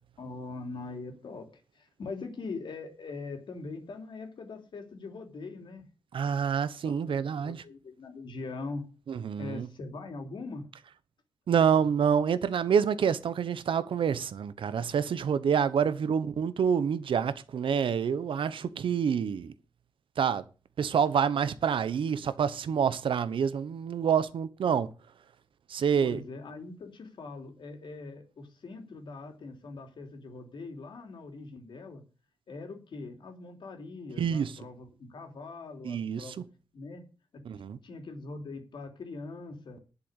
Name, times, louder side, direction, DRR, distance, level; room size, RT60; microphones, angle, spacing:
voice 1, 0.2-5.9 6.8-8.9 9.4-10.7 26.0-32.0 32.5-36.4 36.7-37.0 37.3-37.4 37.8-39.8, left 3 dB, 65° left, 3.2 m, -42 dB
voice 2, 6.1-7.6 9.1-9.7 11.5-19.5 20.2-20.4 20.8-24.9 25.7-26.2 34.2-34.5 35.8-36.2 37.5-37.8, right 7 dB, 85° right, 1.1 m, -27 dB
11.0 x 7.1 x 8.1 m
wide cardioid pair, 160°, 9 cm